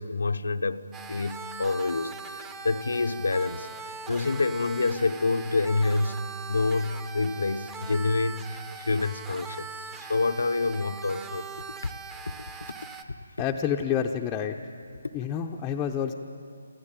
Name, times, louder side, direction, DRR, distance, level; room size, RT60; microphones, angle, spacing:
voice 1, 0.0-11.5, left 3 dB, 80° left, 9 dB, 0.9 m, -28 dB
sound 1, 0.9-13.0, right 4 dB, 10° right, 1.0 m, -41 dB
voice 2, 13.4-14.6 15.1-16.1, left 8 dB, 15° left, 0 dB, 0.7 m, -28 dB
27.5 x 14.5 x 9.0 m, 2.5 s
hypercardioid pair, 155°, 0 cm